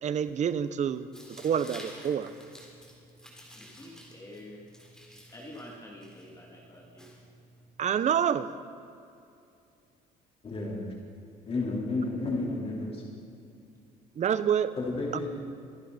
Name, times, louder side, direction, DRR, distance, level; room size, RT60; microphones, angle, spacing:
voice 1, 0.0-1.1 1.4-2.3 7.8-8.5 14.1-14.7, right 8 dB, 45° right, 13 dB, 0.8 m, -27 dB
Tearing, 1.1-7.7, equal, 5° left, 3.7 m, -51 dB
voice 2, 3.5-4.6 5.3-7.1, left 1 dB, 20° left, -4 dB, 2.8 m, -47 dB
voice 3, 10.4-10.8 11.5-13.0 14.8-15.3, left 2 dB, 35° left, -3 dB, 4.1 m, -31 dB
24.5 x 11.5 x 4.3 m, 2.5 s
cardioid pair, 110°, 17 cm